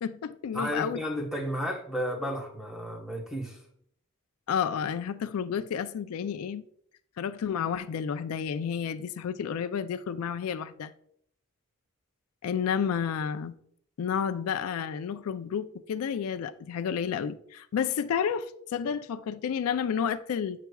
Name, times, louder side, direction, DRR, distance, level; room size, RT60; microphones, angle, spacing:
voice 1, 0.0-1.0 4.5-6.6 7.2-10.9 12.4-13.6 14.0-20.7, left 7 dB, 90° left, 0.4 m, -31 dB
voice 2, 0.5-3.6, equal, 5° right, 1.0 m, -33 dB
8.2 x 5.7 x 2.3 m
head